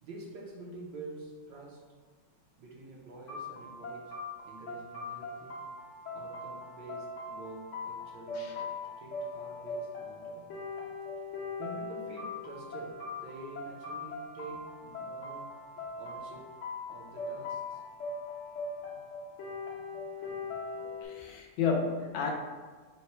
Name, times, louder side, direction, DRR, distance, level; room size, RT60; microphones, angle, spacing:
voice 1, 0.0-1.8 2.6-4.1 4.5-5.6 6.1-8.7 9.0-10.5 11.3-15.5 16.0-16.4 16.9-17.8, right 2 dB, 70° right, -2 dB, 1.4 m, -47 dB
sound 1, 3.3-21.0, left 3 dB, 55° left, 0.9 m, -40 dB
voice 2, 21.0-22.3, left 5 dB, 80° left, 2 dB, 1.3 m, -32 dB
4.1 x 2.2 x 4.3 m, 1.4 s
omnidirectional pair, 2.2 m